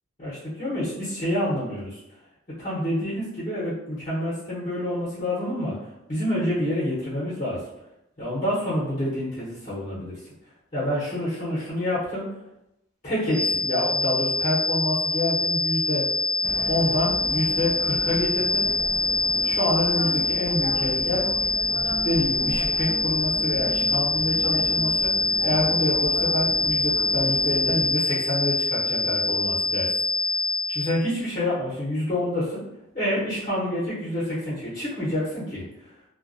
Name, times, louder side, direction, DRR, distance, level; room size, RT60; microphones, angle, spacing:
voice 1, 0.2-2.0 2.6-5.7 6.1-7.6 8.2-10.1 10.7-12.2 13.0-16.0 16.7-18.7 19.4-21.3 22.0-25.1 25.4-29.9 30.7-32.6 32.9-35.6, left 1 dB, 40° left, -11 dB, 0.7 m, -27 dB
sound 1, 13.3-31.0, left 3 dB, 35° right, 1.0 m, -24 dB
sound 2, 16.4-27.9, equal, 10° left, 0.4 m, -36 dB
2.3 x 2.1 x 2.5 m, 0.87 s
head